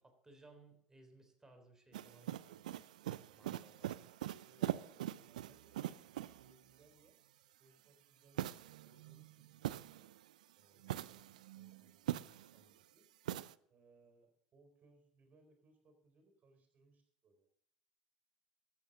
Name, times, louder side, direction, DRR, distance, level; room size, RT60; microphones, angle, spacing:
voice 1, 0.0-2.6 3.3-4.1, right 3 dB, 15° right, 5 dB, 3.6 m, -62 dB
sound 1, 1.9-6.5 8.4-10.3 10.8-12.6 13.3-13.5, right 13 dB, 80° right, 0.4 m, -43 dB
voice 2, 4.3-7.2 7.6-8.6 8.8-10.1 10.6-13.1 13.7-17.5, right 3 dB, 40° right, 6 dB, 4.3 m, -69 dB
13.5 x 8.6 x 7.3 m, 0.68 s
hypercardioid pair, 75°, 4 cm